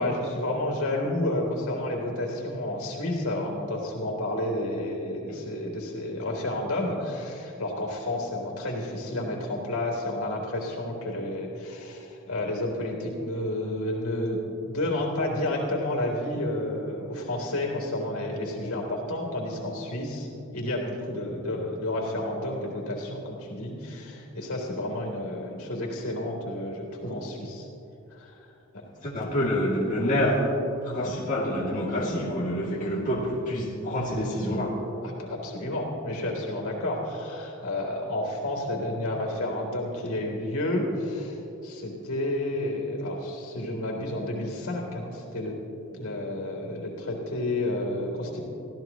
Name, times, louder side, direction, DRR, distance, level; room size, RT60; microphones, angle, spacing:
voice 1, 0.0-27.7 28.1-28.8 31.0-31.1 35.0-45.5 45.9-48.4, left 1 dB, 75° left, 0 dB, 3.3 m, -31 dB
voice 2, 29.0-30.5 30.8-34.8, equal, 35° left, -6 dB, 2.6 m, -27 dB
25.0 x 16.0 x 3.0 m, 2.9 s
head